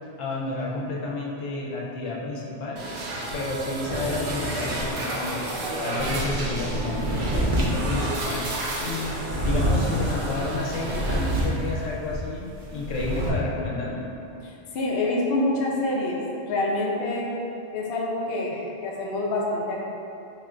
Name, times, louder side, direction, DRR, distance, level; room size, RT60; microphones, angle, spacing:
voice 1, 0.2-2.9 3.3-8.5 8.8-14.1, left 2 dB, 90° left, -4 dB, 1.0 m, -31 dB
sound 1, 2.8-11.4, right 1 dB, 70° right, 1.0 m, -31 dB
sound 2, 6.0-12.2 12.5-13.3, equal, 50° right, 0.7 m, -27 dB
voice 2, 14.4-17.3 17.7-19.8, left 2 dB, 60° left, -3 dB, 0.7 m, -27 dB
3.0 x 2.4 x 4.3 m, 2.7 s
omnidirectional pair, 1.3 m